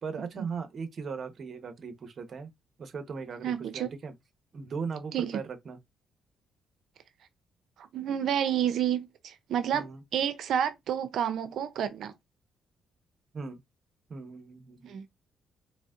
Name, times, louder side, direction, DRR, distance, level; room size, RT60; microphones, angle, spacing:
voice 1, 0.0-2.5 2.8-4.1 4.5-5.8 9.7-10.0 13.3-13.6 14.1-15.0, right 5 dB, 50° right, 1.0 m, -38 dB
voice 2, 3.4-3.9 5.1-5.4 7.8-12.1 14.8-15.1, right 9 dB, 70° right, 0.5 m, -30 dB
4.0 x 3.5 x 2.5 m
cardioid pair, 90°, 0 cm